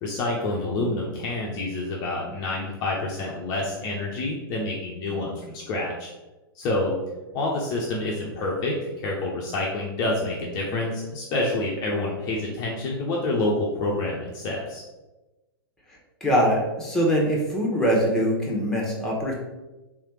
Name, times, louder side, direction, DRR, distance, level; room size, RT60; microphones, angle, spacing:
voice 1, 0.0-6.1 6.5-7.0 7.3-14.8, left 2 dB, 30° left, -3 dB, 0.7 m, -28 dB
voice 2, 16.2-19.3, equal, 5° left, -3 dB, 1.1 m, -23 dB
3.5 x 3.3 x 4.6 m, 1.1 s
figure-of-eight pair, 105°, 13 cm